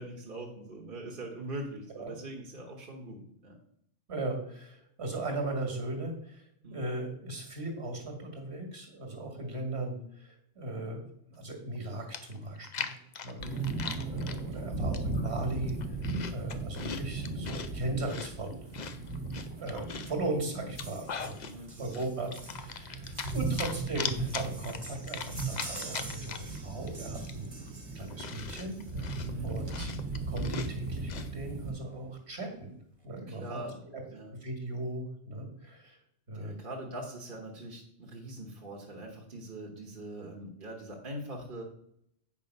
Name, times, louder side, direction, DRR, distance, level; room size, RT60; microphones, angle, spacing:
voice 1, 0.0-3.5 6.6-6.8 13.4-13.6 21.4-22.3 29.2-29.5 33.3-34.3 36.3-41.6, right 1 dB, 45° right, -1 dB, 1.6 m, -42 dB
voice 2, 4.1-13.0 13.2-13.4 14.0-16.0 16.2-18.6 19.6-21.4 21.8-22.3 22.6-27.5 27.9-28.8 29.4-29.9 30.3-32.7 33.0-33.6 33.9-34.0 34.3-36.0 36.3-36.6, right 2 dB, 65° right, 4 dB, 2.2 m, -37 dB
Chewing mastication, 11.8-11.9 12.1-14.4 14.9-15.3 15.6-17.7 18.1-20.2 20.6-21.5 21.9-23.3 23.6-26.6 26.9-27.0 27.2-31.3, left 6 dB, 45° left, 0.7 m, -40 dB
sound 1, 13.4-31.7, right 3 dB, 80° right, 1.7 m, -37 dB
sound 2, 20.7-29.1 30.2-30.3 30.6-30.7 30.9-31.1 31.4-32.0 32.5-32.6, right 2 dB, 25° right, 1.4 m, -48 dB
8.8 x 5.5 x 5.3 m, 0.70 s
omnidirectional pair, 1.2 m